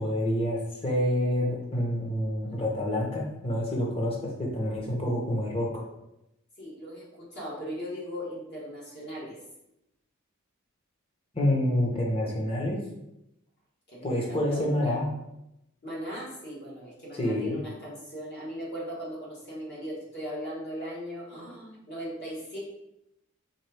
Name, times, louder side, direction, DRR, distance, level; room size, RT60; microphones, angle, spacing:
voice 1, 0.0-5.8 11.3-12.8 14.0-15.1 17.2-17.6, left 1 dB, 25° left, -2 dB, 1.0 m, -28 dB
voice 2, 6.6-9.4 13.9-15.0 15.8-22.6, equal, 50° left, -5 dB, 1.6 m, -38 dB
4.4 x 3.5 x 3.4 m, 0.86 s
head